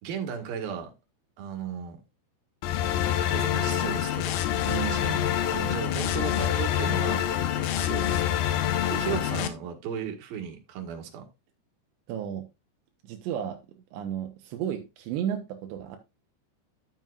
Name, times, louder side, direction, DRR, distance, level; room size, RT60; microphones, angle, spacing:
voice 1, 0.0-0.9 1.4-2.0 3.3-4.4 4.8-7.2 7.5-8.2 8.9-11.2, right 8 dB, 60° right, 3.3 m, -36 dB
sound 1, 2.6-9.5, left 10 dB, 80° left, 3.2 m, -26 dB
voice 2, 4.7-5.2 8.8-8.9 12.1-12.5 13.0-13.6 13.9-16.0, right 9 dB, 80° right, 3.1 m, -33 dB
12.0 x 7.4 x 2.4 m
omnidirectional pair, 5.0 m